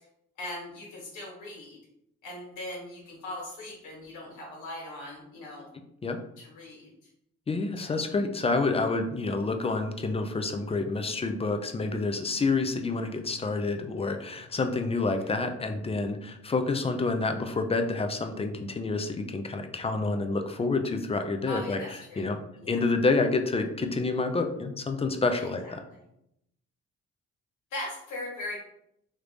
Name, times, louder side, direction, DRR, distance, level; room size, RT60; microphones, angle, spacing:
voice 1, 0.4-1.8 2.2-5.7 6.4-6.9 7.8-7.9 21.5-22.3 22.6-22.9 25.4-25.7 27.7-28.6, left 1 dB, 80° left, -2 dB, 1.5 m, -39 dB
voice 2, 7.5-22.4 22.7-25.8, left 3 dB, 20° left, 6 dB, 0.3 m, -28 dB
3.2 x 2.5 x 3.3 m, 0.78 s
cardioid pair, 90°, 30 cm